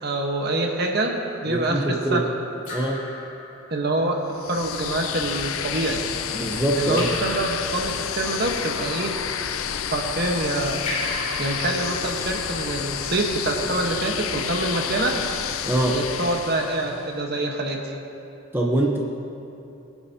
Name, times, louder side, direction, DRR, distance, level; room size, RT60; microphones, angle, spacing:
voice 1, 0.0-1.8 2.1-2.3 3.7-6.0 6.8-9.1 9.9-10.8 11.4-15.1 15.9-17.9, right 2 dB, 50° right, 2 dB, 1.2 m, -26 dB
Raindrop / Drip, 1.3-1.4 2.6-4.0 6.9-8.0 10.8-12.6, left 1 dB, 35° left, 2.8 m, -35 dB
voice 2, 1.5-2.2 2.7-3.0 6.3-7.1 15.7-16.0 18.5-19.0, right 1 dB, 10° right, -2 dB, 0.7 m, -23 dB
sound 1, 4.3-17.1, left 8 dB, 75° left, 0.5 m, -30 dB
20.5 x 9.7 x 2.8 m, 2.8 s
head